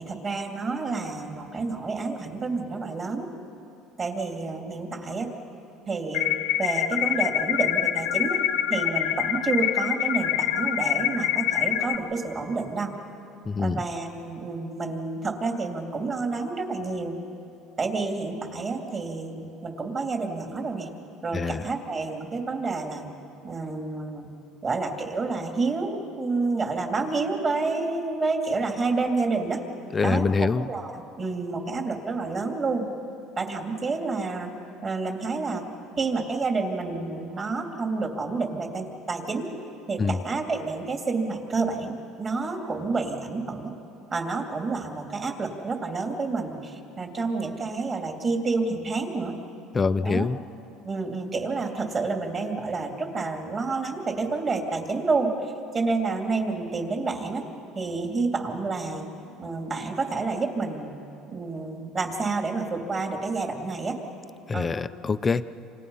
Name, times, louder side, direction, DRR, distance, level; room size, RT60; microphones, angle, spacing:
voice 1, 0.0-3.3 4.0-5.3 5.9-8.4 8.7-12.9 13.6-17.2 17.8-20.9 21.2-23.1 23.4-24.3 24.6-29.6 30.0-30.2 30.7-32.9 33.4-34.5 34.8-35.6 36.0-39.5 39.9-43.7 44.1-49.3 50.0-50.3 50.8-55.3 55.7-57.5 57.7-59.1 59.4-61.0 61.3-64.0 64.5-64.8, right 3 dB, 30° right, 3 dB, 2.9 m, -29 dB
sound 1, 6.1-12.0, left 11 dB, 85° left, 1.0 m, -25 dB
voice 2, 13.5-13.8 21.3-21.6 29.9-30.6 40.0-40.2 49.7-50.4 64.5-65.5, left 4 dB, 20° left, 12 dB, 0.6 m, -25 dB
29.0 x 27.0 x 5.6 m, 2.7 s
cardioid pair, 135°, 0 cm